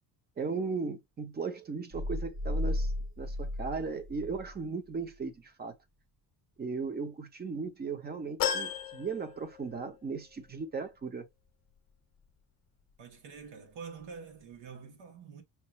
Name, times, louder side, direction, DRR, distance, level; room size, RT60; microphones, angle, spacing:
voice 1, 0.4-5.7 6.6-11.3, right 4 dB, 20° right, 0.7 m, -37 dB
sound 1, 1.9-4.6, left 1 dB, 40° right, 1.1 m, -34 dB
sound 2, 8.4-10.0 10.5-10.6 11.8-11.9, left 8 dB, 50° left, 0.6 m, -35 dB
voice 2, 13.0-15.4, right 6 dB, 70° right, 1.4 m, -46 dB
5.8 x 2.4 x 3.0 m
cardioid pair, 165°, 45 cm